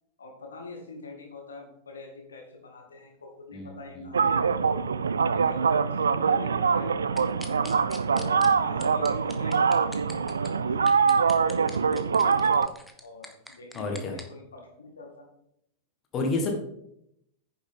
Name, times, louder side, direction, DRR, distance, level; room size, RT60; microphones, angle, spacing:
voice 1, 0.2-4.7 5.3-7.6 8.0-12.3 13.0-15.3, left 3 dB, 70° left, 1 dB, 2.2 m, -45 dB
voice 2, 3.5-4.1 13.7-14.2 16.1-16.5, left 3 dB, 30° left, 2 dB, 1.7 m, -30 dB
sound 1, 4.1-12.7, right 5 dB, 70° right, 0.4 m, -24 dB
sound 2, 7.2-8.5 8.8-10.5 10.9-14.2, left 1 dB, ahead, 1.2 m, -43 dB
9.8 x 7.1 x 3.8 m, 0.76 s
figure-of-eight pair, 90°, 0 cm